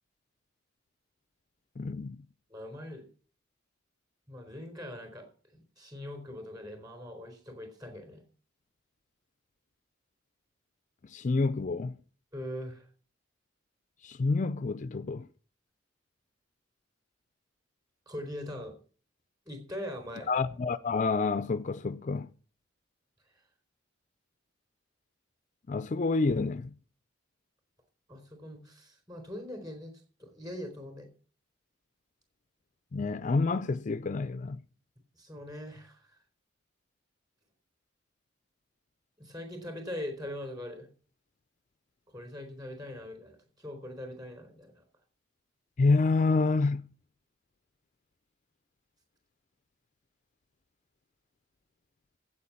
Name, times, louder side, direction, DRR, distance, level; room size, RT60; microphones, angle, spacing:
voice 1, 1.8-2.2 11.0-12.0 14.0-15.3 20.3-22.3 25.7-26.7 32.9-34.6 45.8-46.9, left 3 dB, 40° left, 0.4 m, -28 dB
voice 2, 2.5-3.1 4.3-8.2 12.3-12.9 18.1-18.7 19.5-20.3 28.1-31.1 35.2-36.0 39.2-40.9 42.1-44.8, left 1 dB, 20° right, 3.9 m, -42 dB
8.5 x 8.5 x 8.5 m
head